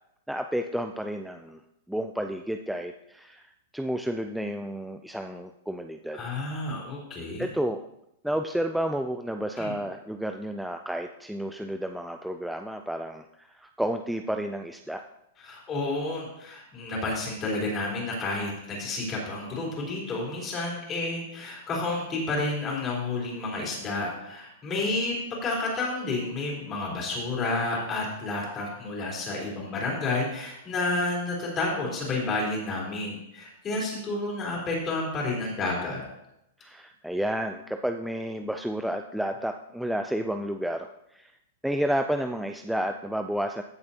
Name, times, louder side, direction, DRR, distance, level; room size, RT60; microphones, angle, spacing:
voice 1, 0.3-1.6 1.9-3.4 3.7-6.2 7.4-7.8 8.2-15.0 24.8-24.9 33.7-33.8 36.6-41.3 41.6-43.6, equal, ahead, 5 dB, 0.3 m, -31 dB
voice 2, 6.1-7.5 9.6-9.8 15.4-36.0, left 2 dB, 25° left, -3 dB, 3.8 m, -30 dB
15.0 x 6.8 x 2.8 m, 0.81 s
hypercardioid pair, 150°, 0 cm